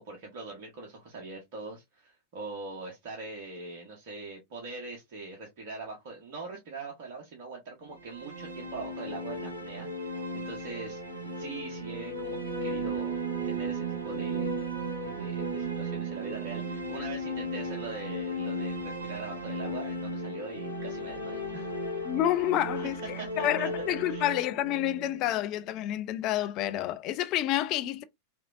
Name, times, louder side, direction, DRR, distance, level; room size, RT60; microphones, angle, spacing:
voice 1, 0.0-13.2 13.4-14.6 15.0-21.8 22.7-23.7 24.1-24.3, right 3 dB, 50° right, 0.9 m, -42 dB
sound 1, 7.9-25.9, right 1 dB, 80° right, 1.1 m, -35 dB
voice 2, 22.0-28.0, left 13 dB, 40° left, 0.4 m, -29 dB
3.0 x 2.6 x 2.3 m
figure-of-eight pair, 90°, 0 cm